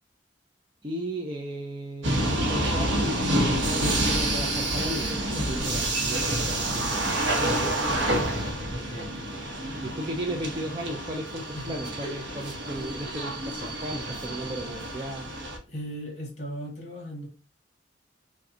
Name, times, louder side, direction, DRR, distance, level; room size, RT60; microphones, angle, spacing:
voice 1, 0.8-7.0 9.8-15.3, right 1 dB, 25° right, 0.5 m, -35 dB
sound 1, 2.0-15.6, right 1 dB, 90° right, 1.0 m, -28 dB
voice 2, 8.7-9.3 11.5-11.8 15.7-17.3, equal, 40° left, 1.6 m, -37 dB
4.9 x 2.3 x 2.7 m
head